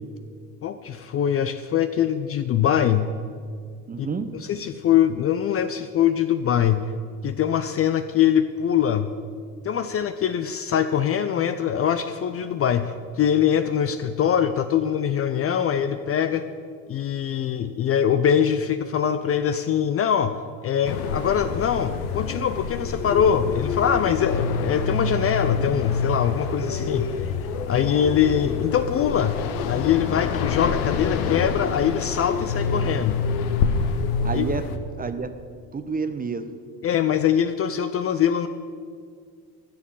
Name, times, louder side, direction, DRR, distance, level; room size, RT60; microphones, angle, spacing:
voice 1, 0.6-3.1 4.0-4.1 4.3-6.9 7.2-9.1 9.6-16.5 16.9-20.3 20.6-27.3 27.7-29.4 29.7-33.2 34.3-34.5 36.8-38.5, left 9 dB, 30° left, 10 dB, 0.5 m, -23 dB
voice 2, 3.9-4.3 34.2-34.7 35.0-35.3 35.7-36.4, right 5 dB, 20° right, 10 dB, 0.8 m, -28 dB
sound 1, 20.8-34.8, left 5 dB, 65° left, 1.0 m, -27 dB
13.0 x 7.2 x 8.3 m, 2.1 s
figure-of-eight pair, 60°, 49 cm